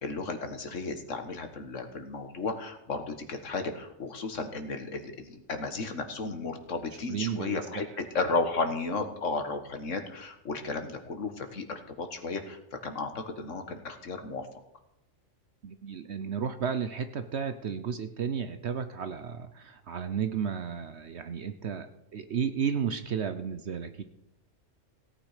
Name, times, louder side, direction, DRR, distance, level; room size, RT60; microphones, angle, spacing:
voice 1, 0.0-14.5, left 3 dB, 70° left, 6 dB, 1.9 m, -34 dB
voice 2, 7.1-7.9 15.6-21.9 22.1-24.0, right 7 dB, 60° right, 9 dB, 1.0 m, -33 dB
17.0 x 9.3 x 5.0 m, 0.86 s
omnidirectional pair, 1.3 m